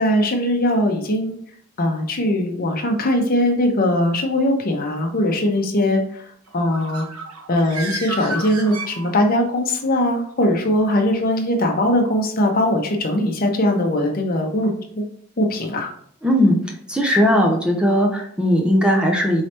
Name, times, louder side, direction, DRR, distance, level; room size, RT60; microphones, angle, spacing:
voice 1, 0.0-1.4 1.8-7.0 7.5-15.0 15.4-15.9, left 1 dB, 40° left, 2 dB, 0.8 m, -20 dB
Bird, 6.5-9.5, right 2 dB, 80° right, 0.8 m, -32 dB
voice 2, 16.2-16.6 16.9-19.4, equal, 5° right, 0 dB, 0.6 m, -17 dB
4.7 x 3.2 x 2.9 m, 0.63 s
head